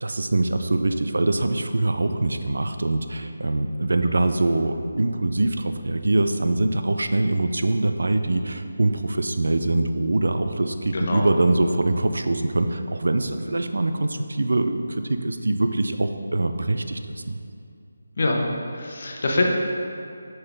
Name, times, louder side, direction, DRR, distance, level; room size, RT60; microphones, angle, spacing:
voice 1, 0.0-17.4, right 2 dB, 75° right, 8 dB, 0.4 m, -23 dB
voice 2, 10.9-11.2 18.2-19.5, left 2 dB, 55° left, 0 dB, 0.9 m, -24 dB
5.7 x 5.5 x 3.4 m, 2.6 s
figure-of-eight pair, 165°, 0 cm